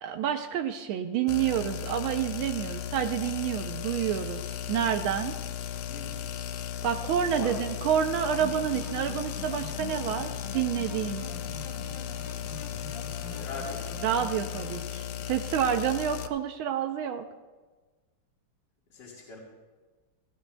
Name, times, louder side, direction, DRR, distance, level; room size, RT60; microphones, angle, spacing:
voice 1, 0.0-4.4 4.7-5.3 6.8-11.2 14.0-17.3, right 9 dB, 80° right, 6 dB, 1.4 m, -29 dB
sound 1, 1.3-16.3, left 10 dB, 85° left, 0.9 m, -36 dB
voice 2, 5.9-6.5 7.2-7.8 13.2-14.0 16.6-16.7 18.9-19.4, left 3 dB, 55° left, -6 dB, 2.4 m, -41 dB
sound 2, 8.0-14.8, left 3 dB, 35° left, 1.1 m, -44 dB
16.5 x 15.5 x 2.2 m, 1.3 s
omnidirectional pair, 2.3 m